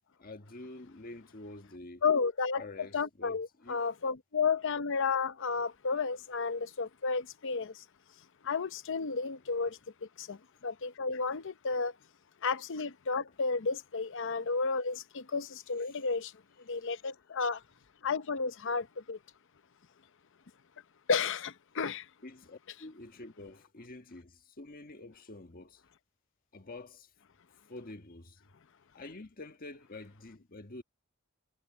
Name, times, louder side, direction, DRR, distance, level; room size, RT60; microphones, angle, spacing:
voice 1, 0.2-2.0 2.5-3.8 9.7-9.8 11.7-11.8 15.9-16.0 22.2-25.8 26.5-27.1 27.7-28.4 28.9-30.8, left 2 dB, 45° left, 1.5 m, -48 dB
voice 2, 2.0-2.6 2.9-7.7 8.4-9.8 10.2-10.4 10.6-11.9 12.4-16.3 16.7-17.6 18.0-19.2 21.1-22.0, left 5 dB, 65° left, 0.7 m, -32 dB
head